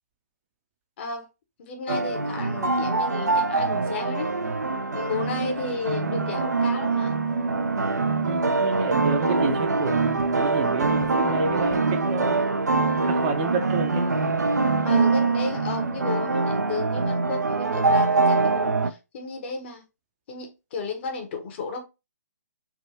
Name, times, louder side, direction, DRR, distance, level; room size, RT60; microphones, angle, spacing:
voice 1, 1.0-1.3 1.6-4.3 4.9-7.1 14.8-19.8 20.3-21.8, left 4 dB, 40° left, 0.9 m, -33 dB
sound 1, 1.9-18.9, right 3 dB, 90° right, 0.4 m, -24 dB
voice 2, 8.2-12.4 13.0-14.1, right 5 dB, 30° right, 0.5 m, -30 dB
3.5 x 2.2 x 2.7 m
figure-of-eight pair, 135°, 9 cm